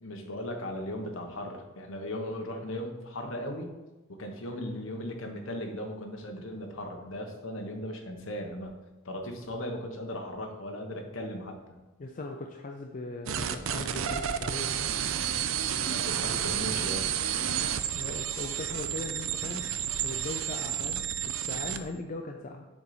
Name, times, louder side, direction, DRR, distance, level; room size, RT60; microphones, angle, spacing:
voice 1, 0.0-3.7 4.1-8.8 9.0-11.8 15.9-17.1, left 1 dB, 65° left, 4 dB, 1.1 m, -37 dB
voice 2, 12.0-14.8 17.9-19.7 20.0-21.1 21.4-22.7, left 2 dB, 40° left, 2 dB, 0.4 m, -39 dB
sound 1, 13.3-21.8, right 9 dB, 70° right, 0.4 m, -31 dB
7.3 x 4.0 x 5.0 m, 1.1 s
head